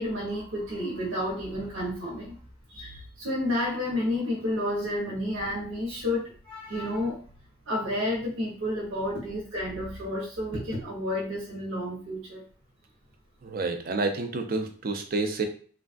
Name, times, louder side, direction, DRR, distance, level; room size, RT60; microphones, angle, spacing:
voice 1, 0.0-2.4 2.7-7.2 7.7-12.4, left 1 dB, 85° right, -5 dB, 0.9 m, -31 dB
voice 2, 13.4-15.5, right 3 dB, 45° right, 6 dB, 0.4 m, -29 dB
3.2 x 2.3 x 2.4 m, 0.43 s
head